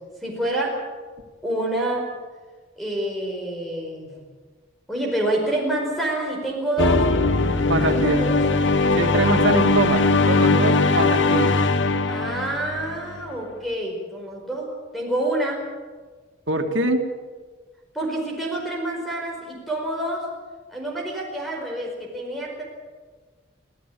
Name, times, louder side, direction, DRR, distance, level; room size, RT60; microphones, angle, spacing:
voice 1, 0.2-0.7 1.4-2.0 2.8-4.2 4.9-7.0 7.7-8.6 12.1-14.7 14.9-15.6 17.9-20.2 20.7-22.6, right 1 dB, ahead, -1 dB, 4.9 m, -27 dB
sound 1, 6.8-13.2, left 3 dB, 75° left, 1.1 m, -20 dB
voice 2, 7.7-8.3 9.0-11.5 16.5-17.0, right 2 dB, 85° right, 5 dB, 2.3 m, -23 dB
25.5 x 15.0 x 8.6 m, 1.4 s
head